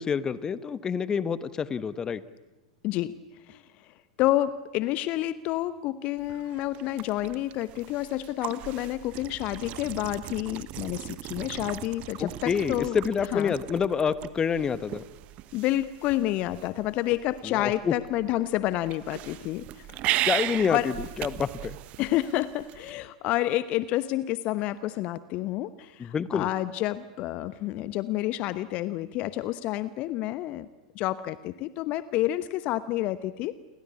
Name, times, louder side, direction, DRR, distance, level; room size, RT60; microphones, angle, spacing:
voice 1, 0.0-2.2 12.2-15.0 17.4-17.9 20.2-21.8 26.0-26.5, left 6 dB, 20° left, 16 dB, 1.2 m, -28 dB
voice 2, 2.8-3.2 3.5-3.6 4.2-13.0 13.3-13.6 15.5-19.9 20.7-20.9 22.0-30.7 30.9-33.5, left 15 dB, 40° left, 15 dB, 0.9 m, -29 dB
sound 1, 6.2-22.9, right 15 dB, 40° right, 1.2 m, -37 dB
29.5 x 23.0 x 8.4 m, 1.1 s
figure-of-eight pair, 90°, 3 cm